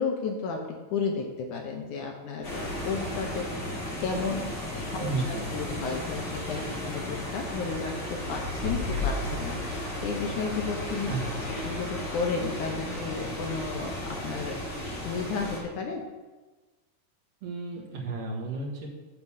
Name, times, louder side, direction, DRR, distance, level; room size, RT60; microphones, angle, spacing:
voice 1, 0.0-3.5 4.0-11.1 11.6-14.6 14.8-16.0, left 5 dB, 70° left, 2 dB, 2.2 m, -33 dB
sound 1, 2.4-15.6, left 1 dB, 40° left, 1.8 m, -34 dB
voice 2, 5.0-5.4 6.5-6.9 11.1-11.3 17.4-18.9, right 3 dB, 50° right, -2 dB, 2.4 m, -33 dB
10.5 x 3.9 x 7.2 m, 1.2 s
omnidirectional pair, 4.0 m